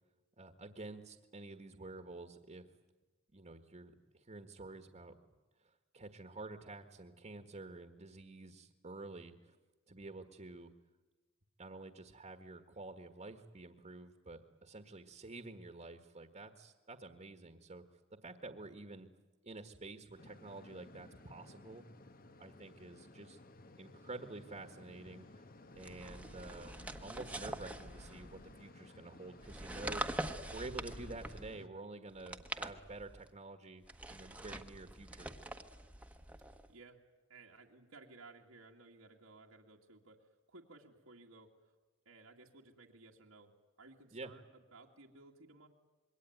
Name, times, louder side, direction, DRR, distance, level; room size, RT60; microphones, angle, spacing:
voice 1, 0.4-2.7 3.3-5.1 5.6-9.5 9.9-10.7 11.6-17.8 18.1-19.1 19.4-21.8 22.4-23.4 23.8-25.4 25.7-26.7 27.0-35.3 44.1-44.3, right 2 dB, 35° right, 7 dB, 1.5 m, -49 dB
sound 1, 20.2-31.7, left 2 dB, 45° left, 1.2 m, -57 dB
sound 2, 25.8-28.6 29.4-31.6 32.1-33.3 33.8-36.7, right 1 dB, 5° right, 1.2 m, -44 dB
voice 2, 36.7-37.0 37.3-41.8 42.1-45.7, right 3 dB, 90° right, -2 dB, 2.3 m, -58 dB
26.5 x 22.5 x 9.4 m, 1.2 s
head